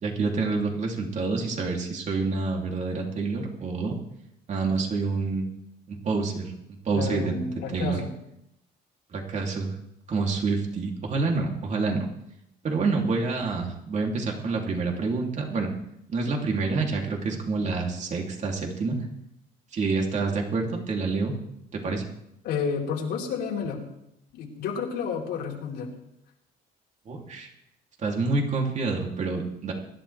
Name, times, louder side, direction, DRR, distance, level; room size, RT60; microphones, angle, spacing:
voice 1, 0.0-4.0 4.5-5.5 5.9-6.5 6.8-7.3 7.7-8.0 9.1-9.7 10.1-12.1 12.6-15.7 16.1-19.1 19.7-21.3 21.7-22.0 27.1-27.5 28.0-29.7, right 4 dB, 45° right, 0 dB, 3.0 m, -27 dB
voice 2, 6.9-8.1 22.4-23.9 24.3-25.9, left 6 dB, 85° left, -3 dB, 4.0 m, -30 dB
23.0 x 11.5 x 3.4 m, 0.81 s
cardioid pair, 110°, 17 cm